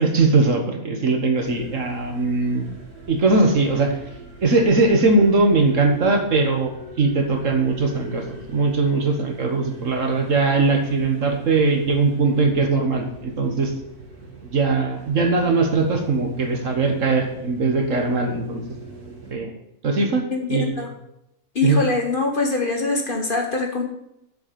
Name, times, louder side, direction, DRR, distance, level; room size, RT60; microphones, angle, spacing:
voice 1, 0.0-2.7 3.1-4.0 4.4-6.7 7.0-13.7 14.5-18.6 19.3-19.5 19.8-20.2 20.5-20.7 21.6-21.8, right 3 dB, 60° right, 3 dB, 1.8 m, -20 dB
sound 1, 1.3-19.3, right 3 dB, 75° right, 2.5 m, -42 dB
voice 2, 20.3-20.9 21.5-23.8, left 3 dB, 35° left, 2 dB, 1.4 m, -23 dB
7.8 x 7.1 x 6.9 m, 0.80 s
omnidirectional pair, 1.6 m